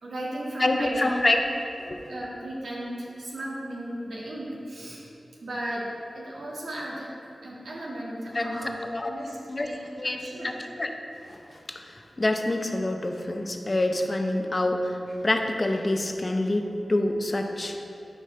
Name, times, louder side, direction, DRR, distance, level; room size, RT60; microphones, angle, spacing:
voice 1, 0.0-1.3 2.1-5.1 5.4-7.1 7.4-8.8 9.1-9.8 10.0-10.5, right 1 dB, 90° right, -5 dB, 1.8 m, -35 dB
voice 2, 0.6-1.4 1.8-2.0 8.3-9.1 9.5-9.7 10.0-10.2 10.4-10.9 11.3-11.4 11.7-18.0, left 1 dB, 35° left, 4 dB, 0.7 m, -27 dB
11.5 x 5.4 x 3.2 m, 2.8 s
wide cardioid pair, 85°, 0 cm